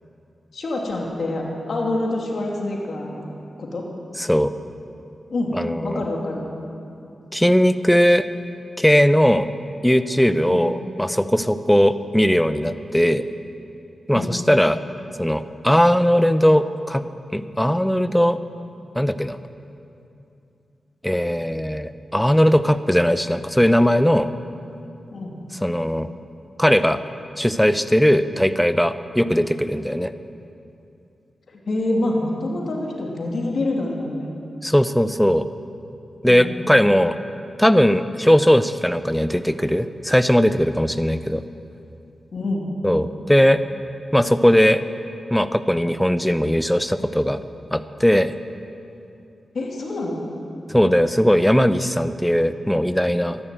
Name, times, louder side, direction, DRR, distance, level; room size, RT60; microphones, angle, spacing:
voice 1, 0.5-3.3 3.6-3.9 5.3-5.6 5.8-6.5 10.5-10.7 14.1-14.4 25.1-25.4 31.5-34.3 36.3-36.5 42.3-42.7 49.5-50.2, left 2 dB, 65° left, -1 dB, 2.6 m, -26 dB
voice 2, 4.2-4.5 5.5-6.0 7.3-8.2 8.8-9.5 9.8-13.2 14.1-14.8 15.2-17.0 17.3-18.4 18.9-19.4 21.0-24.3 25.6-26.1 26.6-27.0 27.4-30.1 34.6-35.5 36.2-37.2 37.6-41.4 42.8-43.6 44.1-44.8 45.3-47.4 47.7-48.3 50.7-53.4, equal, 5° left, 12 dB, 0.7 m, -18 dB
13.5 x 11.0 x 7.7 m, 2.7 s
cardioid pair, 50°, 0 cm